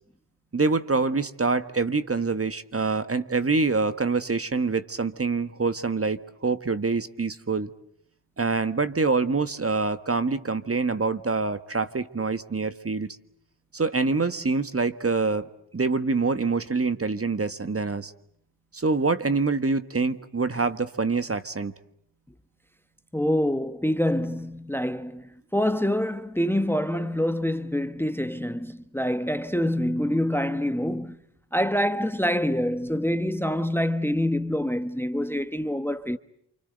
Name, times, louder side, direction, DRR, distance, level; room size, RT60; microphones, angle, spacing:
voice 1, 0.5-7.7 8.4-13.1 13.7-15.5 15.7-18.1 18.7-21.7, right 4 dB, 30° right, 1.5 m, -25 dB
voice 2, 23.1-31.2 31.5-36.2, equal, 5° left, 1.2 m, -26 dB
28.0 x 25.5 x 8.0 m
cardioid pair, 60°, 44 cm